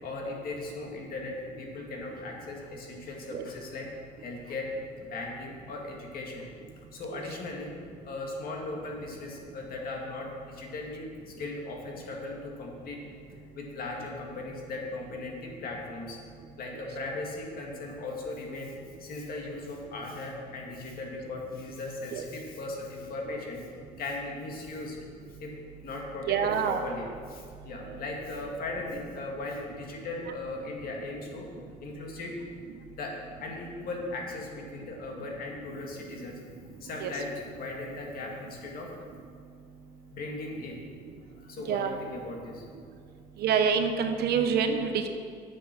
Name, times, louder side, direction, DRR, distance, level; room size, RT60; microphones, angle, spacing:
voice 1, 0.0-3.9 4.2-4.7 5.0-6.5 6.9-7.7 8.0-13.0 13.3-16.2 16.6-18.7 19.0-23.7 24.0-25.0 25.4-25.5 25.8-31.5 31.8-32.3 32.9-36.4 36.8-38.9 40.1-40.8 41.4-42.6, left 2 dB, 60° left, 0 dB, 2.1 m, -38 dB
voice 2, 26.3-26.8 37.0-37.1 41.7-41.9 43.4-45.1, right 7 dB, 70° right, 7 dB, 0.9 m, -26 dB
8.4 x 7.1 x 6.1 m, 2.1 s
cardioid pair, 110°, 17 cm